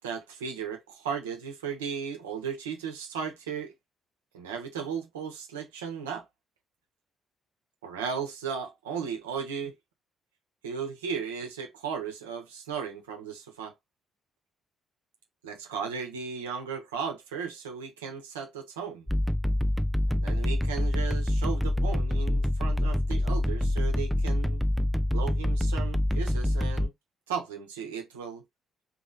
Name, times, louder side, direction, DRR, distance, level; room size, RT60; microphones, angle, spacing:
voice 1, 0.0-3.7 4.3-6.3 7.8-9.7 10.6-13.7 15.4-19.1 20.1-24.6 25.1-26.9 27.3-28.4, right 6 dB, 75° right, 0.9 m, -36 dB
sound 1, 19.1-26.9, left 1 dB, ahead, 0.5 m, -26 dB
4.4 x 3.1 x 3.9 m
figure-of-eight pair, 45°, 0 cm